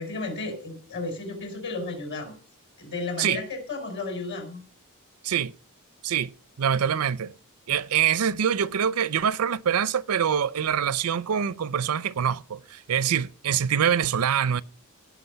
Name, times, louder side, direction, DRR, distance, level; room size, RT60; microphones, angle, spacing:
voice 1, 0.0-2.3 2.8-4.6, left 3 dB, 55° left, 4.5 m, -33 dB
voice 2, 6.6-7.3 7.7-14.6, right 8 dB, 80° right, 0.5 m, -25 dB
17.5 x 6.0 x 5.7 m
head